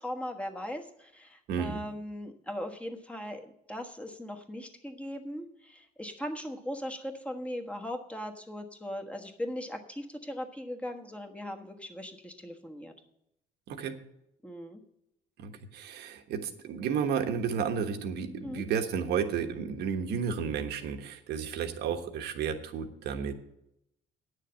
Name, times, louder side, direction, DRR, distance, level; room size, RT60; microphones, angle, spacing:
voice 1, 0.0-12.9 14.4-14.8 18.4-18.6, equal, 5° left, 3 dB, 1.3 m, -39 dB
voice 2, 1.5-1.8 13.7-13.9 15.4-23.3, right 7 dB, 75° right, 7 dB, 1.3 m, -32 dB
9.1 x 6.6 x 8.7 m, 0.81 s
cardioid pair, 110°, 17 cm